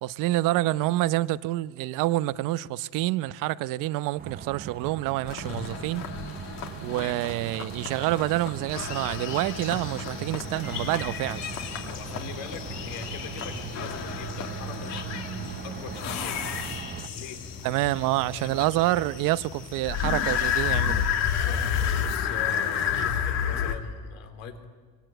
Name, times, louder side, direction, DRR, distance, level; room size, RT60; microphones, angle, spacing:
voice 1, 0.0-6.0 6.8-11.4 17.6-21.0, right 16 dB, 70° right, 0.8 m, -27 dB
sound 1, 4.2-17.1, right 9 dB, 25° right, 0.7 m, -40 dB
sound 2, 5.3-17.2 19.9-23.7, left 8 dB, 55° left, 2.5 m, -31 dB
sound 3, 8.7-21.4, left 6 dB, 40° left, 4.9 m, -41 dB
voice 2, 11.9-15.0 15.6-16.5 17.1-17.4 18.3-19.1 21.2-21.7 22.0-24.6, left 6 dB, 90° left, 3.9 m, -41 dB
24.0 x 23.5 x 9.2 m
cardioid pair, 145°, 33 cm